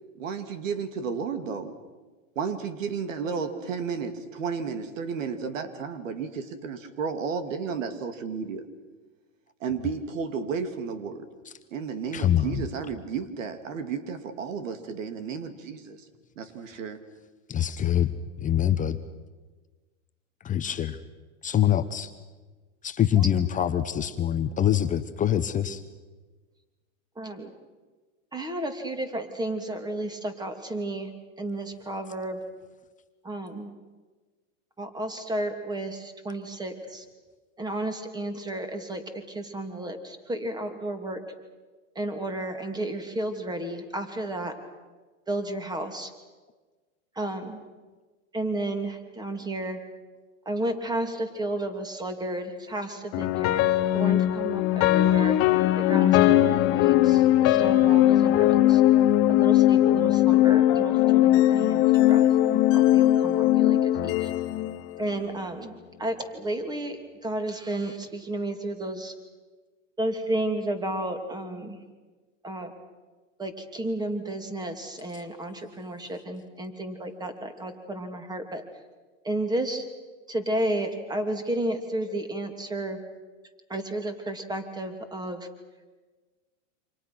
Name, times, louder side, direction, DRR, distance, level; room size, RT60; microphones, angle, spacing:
voice 1, 0.2-1.7 2.4-8.6 9.6-11.3 11.7-16.0 16.4-17.0, right 6 dB, 75° right, 9 dB, 2.7 m, -32 dB
voice 2, 12.1-12.7 17.5-18.1 18.4-19.0 20.4-21.0 21.4-22.1 22.8-25.8, left 10 dB, 20° left, 9 dB, 0.9 m, -24 dB
voice 3, 27.2-27.5 28.3-31.1 31.4-32.4 33.2-33.7 34.8-37.1 37.6-39.0 39.3-41.2 41.9-44.5 45.3-46.1 47.1-47.6 48.3-49.8 50.5-55.4 55.8-58.8 59.3-64.3 65.0-65.7 66.0-69.1 70.0-71.8 72.4-72.7 73.4-78.6 79.2-79.9 80.3-83.0 83.7-85.5, right 1 dB, 10° right, 7 dB, 2.7 m, -32 dB
sound 1, 53.1-65.4, left 14 dB, 40° left, 1.1 m, -20 dB
28.5 x 26.5 x 6.1 m, 1.3 s
hypercardioid pair, 130°, 38 cm